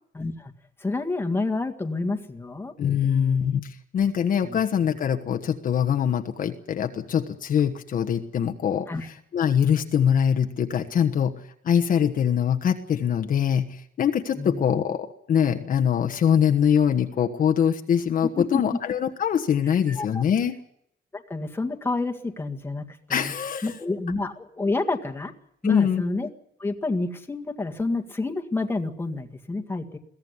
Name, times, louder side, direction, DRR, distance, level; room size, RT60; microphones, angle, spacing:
voice 1, 0.1-0.5 0.8-2.7 3.0-3.4 4.4-4.6 8.9-9.1 14.3-14.6 18.4-18.6 19.9-20.2 21.1-23.3 23.6-25.3 25.6-26.3 26.6-30.0, left 3 dB, 10° left, 4 dB, 1.8 m, -29 dB
voice 2, 2.8-11.3 11.6-20.6 23.1-23.7 25.6-26.0, left 8 dB, 40° left, 6 dB, 1.3 m, -23 dB
22.5 x 16.5 x 9.7 m, 0.74 s
cardioid pair, 180°, 20 cm